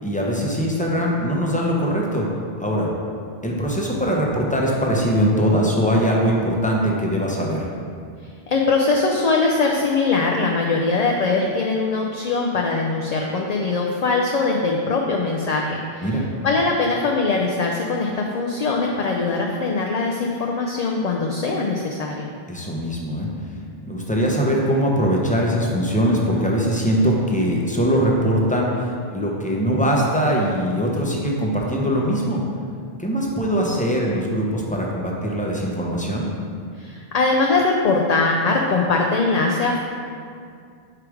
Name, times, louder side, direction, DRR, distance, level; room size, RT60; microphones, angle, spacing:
voice 1, 0.0-2.3 2.6-2.9 3.4-7.7 16.0-16.3 22.5-23.3 23.9-32.4 33.0-36.3, equal, 10° left, -3 dB, 0.7 m, -21 dB
voice 2, 8.5-16.1 16.4-22.3 36.8-39.8, left 3 dB, 55° left, 0 dB, 0.5 m, -21 dB
4.8 x 4.8 x 4.8 m, 2.2 s
omnidirectional pair, 1.0 m